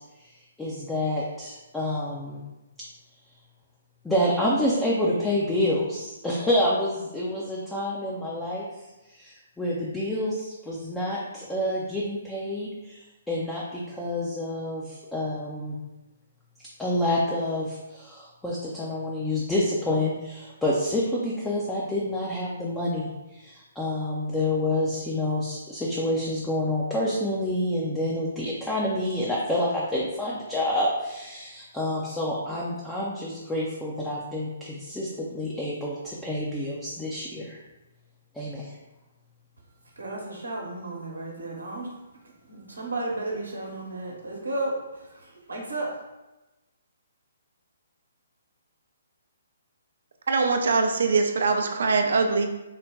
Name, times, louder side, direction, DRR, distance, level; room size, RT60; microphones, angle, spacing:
voice 1, 0.6-2.4 4.0-8.7 9.2-13.0 13.3-15.8 16.8-37.6 38.3-38.7, left 1 dB, 5° left, -6 dB, 0.5 m, -28 dB
voice 2, 40.0-41.9 42.1-46.0, right 2 dB, 75° right, -1 dB, 0.9 m, -33 dB
voice 3, 50.3-52.5, right 4 dB, 60° right, 4 dB, 0.4 m, -22 dB
3.9 x 2.2 x 3.5 m, 1.0 s
figure-of-eight pair, 130°, 0 cm